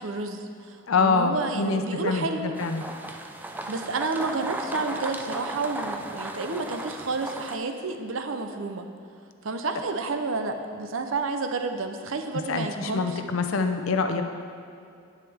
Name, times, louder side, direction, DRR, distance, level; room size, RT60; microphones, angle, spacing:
voice 1, 0.0-2.5 3.5-8.9 9.4-13.2, right 3 dB, 70° right, 6 dB, 0.6 m, -30 dB
voice 2, 0.9-2.8 12.5-14.2, left 4 dB, 75° left, 6 dB, 0.6 m, -25 dB
sound 1, 2.5-7.6, right 2 dB, 10° right, 0.4 m, -36 dB
9.2 x 8.9 x 3.5 m, 2.5 s
head